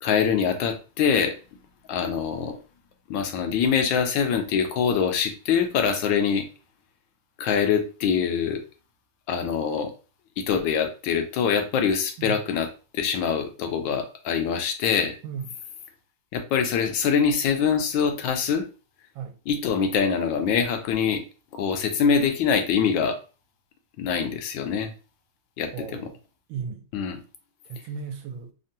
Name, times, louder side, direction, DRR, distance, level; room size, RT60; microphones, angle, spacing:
voice 1, 0.0-1.4 1.9-2.6 3.1-6.5 7.4-8.6 9.3-9.9 10.4-12.7 12.9-15.2 16.3-18.7 19.5-21.2 21.5-23.2 24.0-24.9 25.6-26.1 26.9-27.2, left 7 dB, 80° left, 1.3 m, -24 dB
voice 2, 25.7-26.1 26.5-26.8 27.6-28.5, right 6 dB, 85° right, 1.4 m, -35 dB
3.5 x 2.2 x 2.6 m
omnidirectional pair, 2.1 m